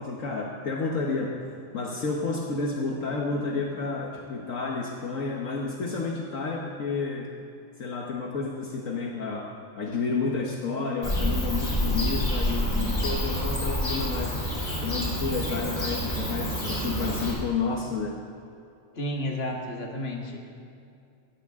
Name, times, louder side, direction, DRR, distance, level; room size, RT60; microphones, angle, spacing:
voice 1, 0.0-1.3 1.7-7.3 7.8-9.5 9.8-14.4 14.8-18.2, left 4 dB, 70° left, 0 dB, 1.5 m, -30 dB
Bird / Cricket, 11.0-17.3, equal, 30° left, 3.6 m, -28 dB
voice 2, 19.0-20.5, left 1 dB, 45° left, 0 dB, 1.9 m, -32 dB
17.0 x 16.0 x 3.7 m, 2.5 s
omnidirectional pair, 1.5 m